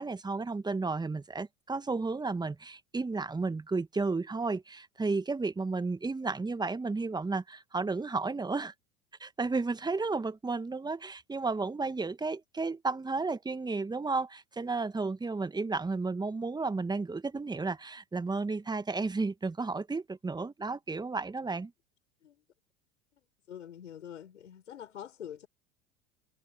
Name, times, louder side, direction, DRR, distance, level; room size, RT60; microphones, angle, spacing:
voice 1, 0.0-8.7 9.2-21.7, right 3 dB, 10° right, 1.6 m, -33 dB
voice 2, 23.5-25.5, left 9 dB, 80° left, 6.5 m, -45 dB
hypercardioid pair, 80°, 36 cm